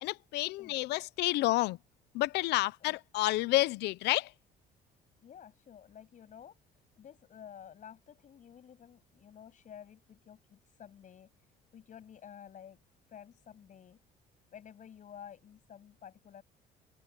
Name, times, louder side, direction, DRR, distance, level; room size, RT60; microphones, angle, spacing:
voice 1, 0.0-1.8 2.1-4.3, left 18 dB, 85° left, 0.7 m, -30 dB
voice 2, 5.2-11.3 11.7-12.8 13.1-14.0 14.5-16.4, left 9 dB, 50° left, 7.9 m, -52 dB
cardioid pair, 110°, 17 cm